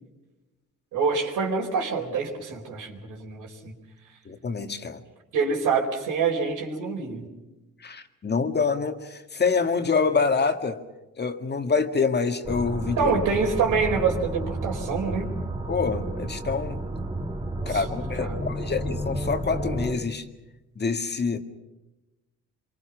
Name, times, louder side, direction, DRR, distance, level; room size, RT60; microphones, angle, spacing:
voice 1, 0.9-3.7 5.3-7.3 13.0-15.3 17.6-18.4, right 5 dB, 85° right, 4.5 m, -26 dB
voice 2, 4.3-5.0 7.8-10.8 11.2-13.1 15.7-16.8 17.7-20.3 20.8-21.4, left 5 dB, 35° left, 1.9 m, -26 dB
sound 1, 12.4-19.9, right 1 dB, 15° right, 2.0 m, -31 dB
26.5 x 24.0 x 6.0 m
cardioid pair, 90°, 30 cm